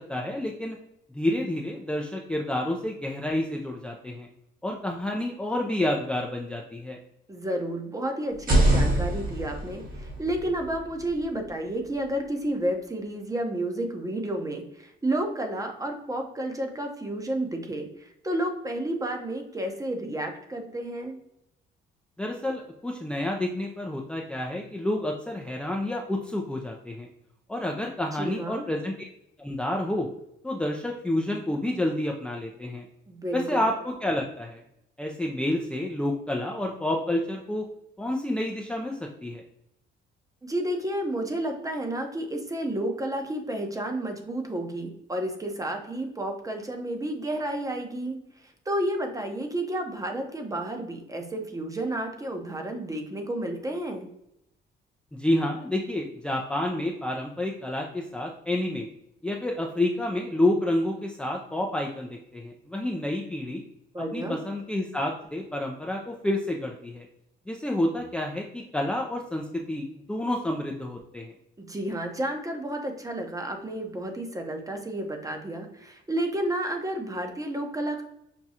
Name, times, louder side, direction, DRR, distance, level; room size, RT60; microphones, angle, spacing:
voice 1, 0.1-0.8 1.1-4.3 4.6-7.0 22.2-27.1 27.5-29.0 29.4-30.1 30.4-32.9 33.3-34.6 35.0-37.6 38.0-39.4 55.1-58.9 59.2-63.6 64.1-67.1 67.5-71.3, left 1 dB, 5° left, 0 dB, 0.4 m, -29 dB
voice 2, 7.3-21.1 28.2-28.6 33.1-33.6 40.4-48.2 48.7-54.1 63.9-64.4 71.6-78.0, right 1 dB, 15° right, 4 dB, 0.8 m, -31 dB
sound 1, 8.3-12.1, right 1 dB, 45° right, 1.4 m, -26 dB
6.1 x 2.3 x 2.7 m, 0.81 s
cardioid pair, 90°, 20 cm